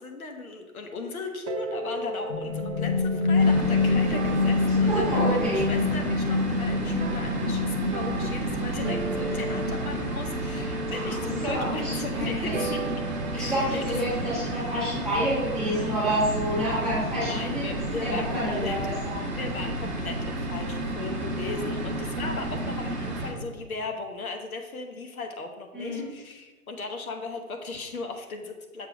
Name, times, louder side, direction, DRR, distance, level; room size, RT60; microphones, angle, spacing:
voice 1, 0.0-12.9 13.3-14.0 17.2-18.8 19.3-28.9, left 3 dB, 70° left, 4 dB, 0.9 m, -37 dB
sound 1, 1.5-16.2, right 3 dB, 55° right, 0.5 m, -37 dB
sound 2, 2.3-10.1, left 3 dB, 45° left, 1.4 m, -26 dB
sound 3, 3.4-23.3, right 1 dB, 30° right, 1.6 m, -31 dB
voice 2, 4.6-5.6 9.3-9.4 10.9-12.7 13.3-17.7 18.0-19.2 25.7-26.0, equal, ahead, -12 dB, 1.2 m, -29 dB
6.7 x 2.9 x 5.0 m, 1.2 s
hypercardioid pair, 155°, 44 cm